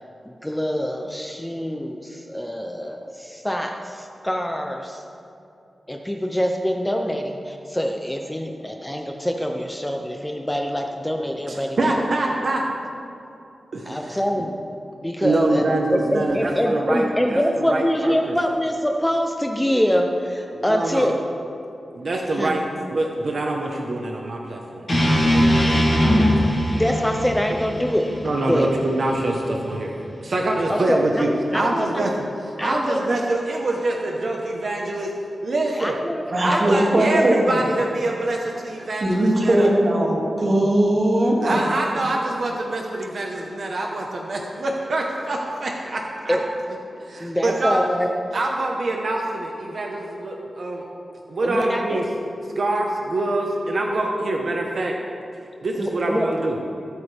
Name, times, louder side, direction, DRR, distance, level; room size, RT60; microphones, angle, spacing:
voice 1, 0.3-5.0 5.9-12.0 13.9-14.5 15.0-15.7 15.9-21.1 22.4-22.6 26.7-28.1 28.4-28.7 30.7-31.2 31.5-32.2 32.6-33.3 35.7-36.2 36.5-36.8 37.1-37.3 46.3-46.4 47.2-48.1 51.4-52.0 55.8-56.3, equal, 5° left, 2 dB, 0.6 m, -24 dB
voice 2, 11.5-12.6 13.7-14.2 15.2-18.4 20.5-21.1 21.9-22.6 22.9-26.6 28.2-30.0 30.2-32.1 32.4-35.1 35.4-35.9 36.4-39.7 41.4-46.4 47.0-47.8 48.3-50.8 51.3-52.0 52.6-54.9 55.6-56.6, right 2 dB, 50° right, 0 dB, 1.1 m, -25 dB
sound 1, 24.9-29.0, equal, 30° left, 3.4 m, -20 dB
voice 3, 36.3-37.6 39.0-41.6, right 1 dB, 35° right, -3 dB, 2.3 m, -19 dB
22.5 x 8.2 x 3.4 m, 2.7 s
wide cardioid pair, 170°, 0 cm